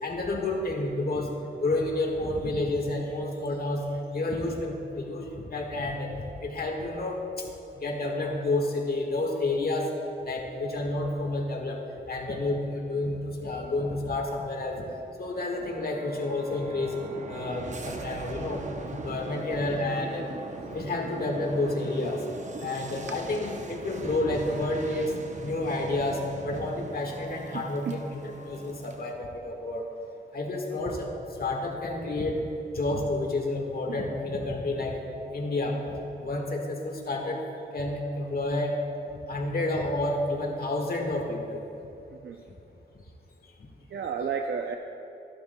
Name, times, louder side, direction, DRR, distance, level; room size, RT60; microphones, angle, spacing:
voice 1, 0.0-1.3 1.6-7.5 7.7-9.9 10.2-14.9 15.2-16.9 17.3-18.6 18.9-20.3 20.7-22.3 22.6-25.1 25.4-29.9 30.3-31.1 31.4-32.4 32.7-35.0 35.3-35.8 36.2-37.4 37.7-38.8 39.3-41.6, left 2 dB, 55° left, 1 dB, 1.6 m, -30 dB
sound 1, 15.3-29.1, right 3 dB, 40° right, 0.8 m, -41 dB
voice 2, 27.5-28.0 33.9-34.0 42.2-42.4 43.9-44.8, right 6 dB, 70° right, 4 dB, 0.5 m, -32 dB
15.0 x 11.5 x 2.3 m, 2.9 s
wide cardioid pair, 95°, 18 cm